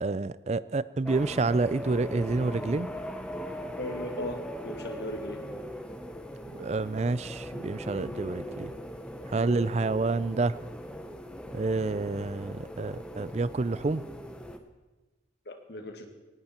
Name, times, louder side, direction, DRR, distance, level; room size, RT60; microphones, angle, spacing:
voice 1, 0.0-2.9 6.5-8.7 9.3-10.6 11.5-14.0, right 3 dB, 35° right, 18 dB, 0.4 m, -28 dB
sound 1, 1.1-14.6, equal, 5° left, 0.9 m, -39 dB
voice 2, 3.8-5.4 15.5-16.1, left 1 dB, 60° left, 5 dB, 2.1 m, -37 dB
19.0 x 16.5 x 4.4 m, 1.2 s
head